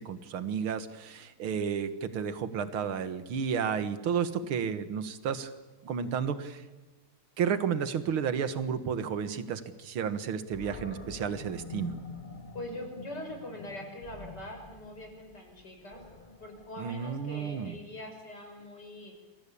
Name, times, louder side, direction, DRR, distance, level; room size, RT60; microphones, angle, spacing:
voice 1, 0.0-5.5 5.8-6.6 7.4-12.0 16.8-17.8, right 7 dB, 70° right, 12 dB, 2.3 m, -32 dB
Animal, 10.5-17.6, left 3 dB, 25° left, 1.6 m, -46 dB
voice 2, 12.5-16.0 16.4-19.1, left 1 dB, 50° left, 3 dB, 6.1 m, -43 dB
28.0 x 22.0 x 8.6 m, 1.2 s
omnidirectional pair, 2.4 m